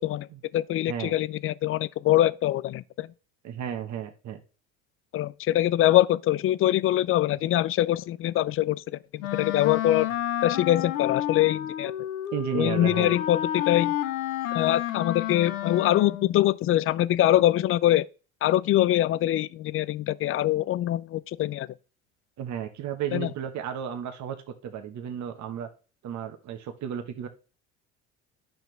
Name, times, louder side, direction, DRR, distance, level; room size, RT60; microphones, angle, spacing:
voice 1, 0.5-3.1 5.1-8.8 9.1-10.1 10.4-11.9 12.5-13.9 14.5-18.0 18.4-21.7 23.1-23.3, left 13 dB, 35° left, 0.4 m, -23 dB
voice 2, 3.4-4.4 12.3-13.1 22.4-25.7 26.0-27.3, right 9 dB, 45° right, 1.3 m, -33 dB
Wind instrument woodwind instrument, 9.2-16.4, left 12 dB, 75° left, 0.9 m, -30 dB
10.5 x 5.9 x 3.3 m
hypercardioid pair, 65°, 40 cm